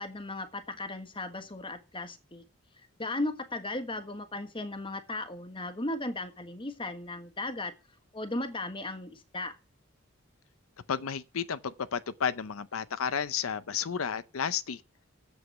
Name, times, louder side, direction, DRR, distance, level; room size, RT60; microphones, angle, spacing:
voice 1, 0.0-2.4 3.0-7.7 8.1-9.5, left 2 dB, 25° left, 1.4 m, -36 dB
voice 2, 10.9-14.8, left 7 dB, 90° left, 0.6 m, -32 dB
8.1 x 7.9 x 8.0 m
head